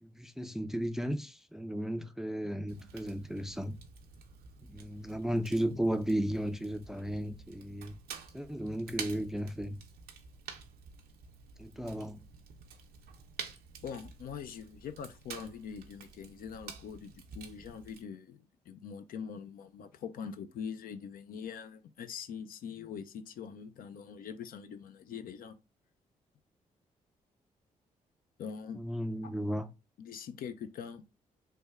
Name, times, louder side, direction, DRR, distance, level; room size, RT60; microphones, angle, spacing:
voice 1, 0.0-3.8 4.7-8.0 8.3-9.8 11.6-12.2 28.7-29.7, equal, 5° right, 0.4 m, -34 dB
Fire, 2.7-18.0, right 6 dB, 80° right, 0.5 m, -49 dB
voice 2, 13.8-25.6 28.4-28.8 29.2-29.3 30.0-31.0, left 7 dB, 70° left, 0.4 m, -43 dB
3.3 x 2.1 x 3.4 m
supercardioid pair, 55°, 15 cm